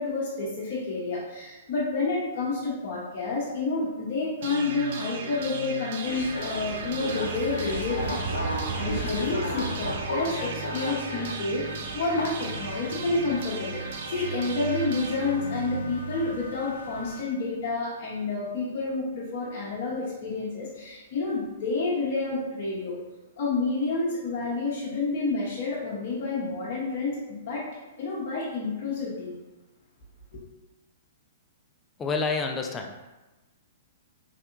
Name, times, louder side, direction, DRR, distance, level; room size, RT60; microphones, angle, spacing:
voice 1, 0.0-8.2 8.4-11.6 11.9-13.8 14.1-23.0 23.4-27.6 28.0-29.3 30.3-30.4, left 3 dB, 50° left, -8 dB, 0.8 m, -29 dB
sound 1, 4.4-16.4, right 5 dB, 55° right, 0.4 m, -36 dB
sound 2, 6.0-17.2, left 1 dB, 80° left, 0.6 m, -35 dB
voice 2, 32.0-33.1, left 4 dB, 20° left, 3 dB, 0.4 m, -29 dB
3.4 x 2.6 x 2.5 m, 1.1 s
hypercardioid pair, 120°, 0 cm